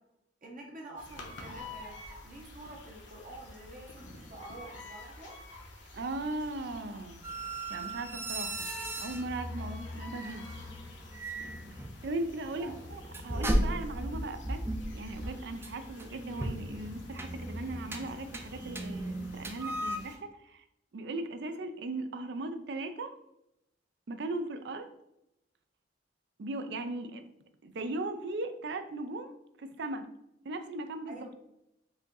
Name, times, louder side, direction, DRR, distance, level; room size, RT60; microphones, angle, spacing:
voice 1, 0.4-5.3 9.6-9.8 12.5-12.7 31.1-31.4, right 2 dB, 50° right, -1 dB, 0.9 m, -48 dB
sound 1, 1.0-20.2, left 2 dB, 85° left, 0.9 m, -50 dB
voice 2, 5.9-7.2 7.7-8.7 9.0-10.4 12.0-14.6 14.9-20.6 20.9-23.1 24.1-24.9 26.4-27.2 27.6-29.3 29.6-30.1 30.5-31.3, right 2 dB, 70° right, 9 dB, 0.4 m, -38 dB
sound 2, 7.2-20.0, right 1 dB, 15° right, 0.4 m, -36 dB
4.9 x 2.6 x 3.9 m, 0.82 s
head